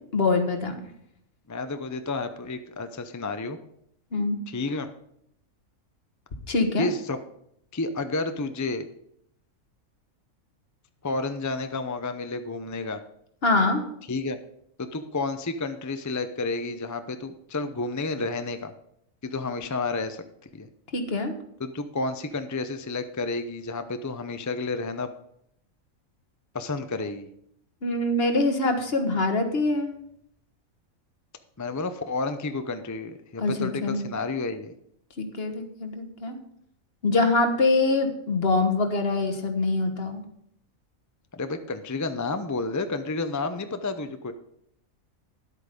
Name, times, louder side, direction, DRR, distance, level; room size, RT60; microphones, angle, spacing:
voice 1, 0.1-0.9 4.1-4.4 6.5-6.9 13.4-13.8 20.9-21.3 27.8-30.0 33.4-34.0 35.2-36.4 37.0-40.2, left 3 dB, 45° left, 5 dB, 1.6 m, -24 dB
voice 2, 1.5-3.6 4.5-4.9 6.8-7.2 7.7-8.9 11.0-13.0 14.1-14.4 14.8-18.7 19.2-20.2 20.5-20.7 21.6-25.1 26.5-27.3 31.6-34.8 41.3-44.3, left 3 dB, 30° left, 9 dB, 0.3 m, -31 dB
11.5 x 8.4 x 5.2 m, 0.73 s
omnidirectional pair, 1.4 m